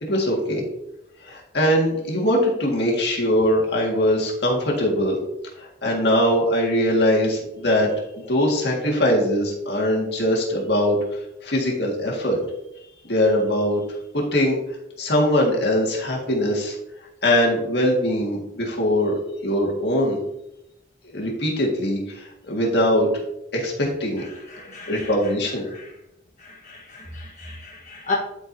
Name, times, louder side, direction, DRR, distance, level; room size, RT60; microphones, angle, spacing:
voice 1, 0.0-0.6 1.2-5.2 5.6-12.4 13.0-14.6 15.0-16.7 17.2-20.2 21.1-23.1 23.5-24.2 24.9-25.7, equal, 60° left, -1 dB, 1.8 m, -22 dB
voice 2, 24.3-25.1 25.7-25.9 26.4-28.2, left 3 dB, 40° left, -4 dB, 1.2 m, -34 dB
11.5 x 4.4 x 2.7 m, 0.85 s
head